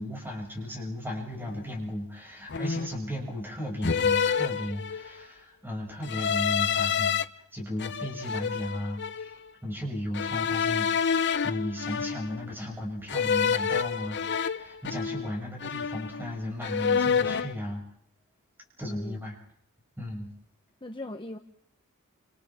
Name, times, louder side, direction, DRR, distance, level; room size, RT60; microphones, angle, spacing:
voice 1, 0.0-7.2 7.5-17.8 18.8-19.4 20.0-20.3, left 1 dB, 10° right, -1 dB, 7.0 m, -35 dB
sound 1, 1.4-1.7 2.5-3.1 3.8-5.2 6.0-7.2 7.8-9.4 10.1-12.5 13.1-15.4 15.6-16.3 16.6-17.5, left 6 dB, 50° left, 0.8 m, -28 dB
voice 2, 18.8-19.2 20.8-21.4, left 1 dB, 20° left, 4 dB, 1.1 m, -38 dB
30.0 x 27.5 x 3.7 m, 0.68 s
head